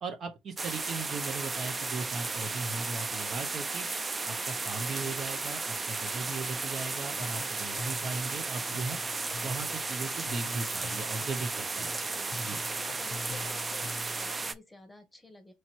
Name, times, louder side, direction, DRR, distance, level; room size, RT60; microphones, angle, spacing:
voice 1, 0.0-3.9 4.3-9.0 9.4-12.1 12.4-12.6, right 4 dB, 50° right, 0.9 m, -38 dB
sound 1, 0.6-14.5, right 3 dB, 25° right, 0.4 m, -34 dB
sound 2, 7.0-14.6, left 3 dB, 50° left, 0.6 m, -46 dB
voice 2, 12.0-12.6 13.0-15.5, left 2 dB, 10° left, 1.1 m, -51 dB
3.2 x 2.8 x 4.5 m
hypercardioid pair, 60°, 0 cm